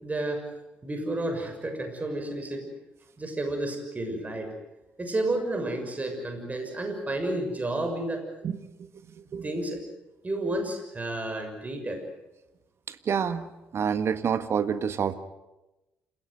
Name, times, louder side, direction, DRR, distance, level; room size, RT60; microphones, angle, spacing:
voice 1, 0.0-0.4 0.8-2.7 3.2-4.5 5.0-8.2 9.4-9.8 10.2-12.0, right 1 dB, 25° right, 5 dB, 6.4 m, -31 dB
voice 2, 8.4-8.9 9.2-9.5 12.9-15.1, right 7 dB, 50° right, 12 dB, 1.7 m, -28 dB
28.0 x 17.0 x 9.4 m, 1.0 s
hypercardioid pair, 50°, 6 cm